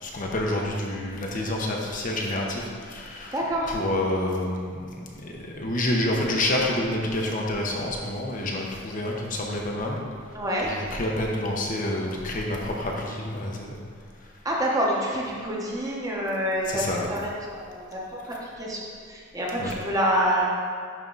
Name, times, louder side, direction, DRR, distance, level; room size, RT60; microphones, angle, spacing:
voice 1, 0.0-4.9 5.1-10.0 10.3-13.7 14.2-14.3 16.7-17.1 19.6-19.7, left 1 dB, 40° left, -1 dB, 0.7 m, -28 dB
voice 2, 3.3-3.8 10.3-10.8 14.4-20.4, equal, 15° right, -4 dB, 1.0 m, -27 dB
10.5 x 3.7 x 3.9 m, 2.1 s
head